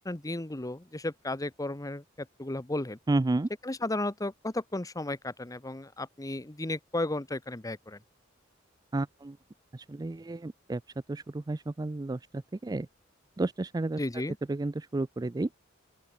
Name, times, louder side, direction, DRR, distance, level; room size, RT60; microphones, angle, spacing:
voice 1, 0.0-2.0 2.4-3.0 3.6-8.0 14.0-14.4, left 2 dB, 15° left, 1.0 m, -34 dB
voice 2, 3.1-3.5 8.9-9.4 9.7-10.8 11.1-12.9 13.4-14.0 14.5-15.5, right 2 dB, 20° right, 0.4 m, -31 dB
open air
head